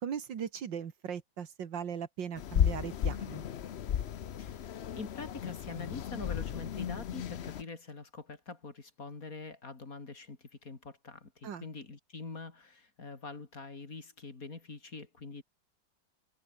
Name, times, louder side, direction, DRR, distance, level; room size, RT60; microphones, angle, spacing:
voice 1, 0.0-3.4 11.4-11.7, right 8 dB, 65° right, 2.1 m, -38 dB
sound 1, 2.3-7.6, left 9 dB, 80° left, 0.5 m, -34 dB
voice 2, 4.4-15.4, left 3 dB, 45° left, 3.3 m, -45 dB
omnidirectional pair, 2.2 m